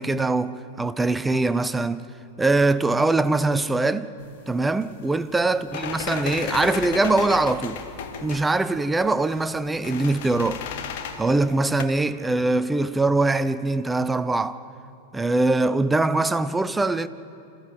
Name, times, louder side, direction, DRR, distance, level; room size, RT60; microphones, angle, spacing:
voice 1, 0.0-2.1 2.4-4.1 4.5-7.8 8.2-10.6 11.2-14.6 15.1-17.1, right 2 dB, 10° right, 0.7 m, -22 dB
sound 1, 4.2-11.8, left 7 dB, 50° left, 1.5 m, -35 dB
27.5 x 15.0 x 7.9 m
figure-of-eight pair, 90°, 0 cm